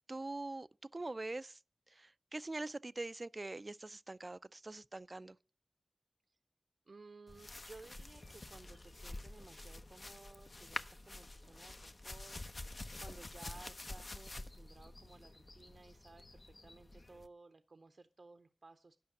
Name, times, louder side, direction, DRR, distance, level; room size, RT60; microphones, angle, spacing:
voice 1, 0.1-1.6 1.9-5.4, right 2 dB, 45° right, 0.4 m, -44 dB
voice 2, 6.9-19.0, right 3 dB, 70° right, 0.7 m, -58 dB
sound 1, 7.3-17.3, left 2 dB, 50° left, 0.8 m, -48 dB
11.0 x 5.7 x 7.1 m
cardioid pair, 45°, 0 cm